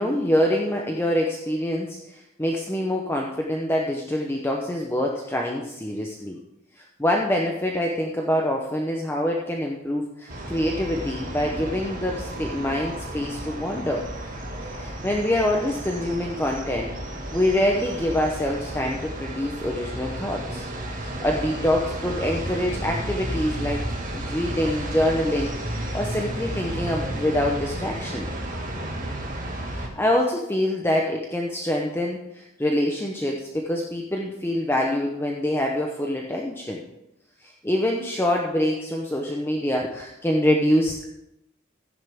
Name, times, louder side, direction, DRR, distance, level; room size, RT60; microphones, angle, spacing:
voice 1, 0.0-6.4 6.8-14.1 14.7-16.9 17.3-20.7 21.0-23.9 24.1-28.3 29.7-36.8 37.4-41.1, left 1 dB, 10° left, 0 dB, 0.8 m, -25 dB
sound 1, 10.3-29.9, right 1 dB, 40° right, 1.9 m, -32 dB
14.5 x 10.0 x 3.6 m, 0.86 s
head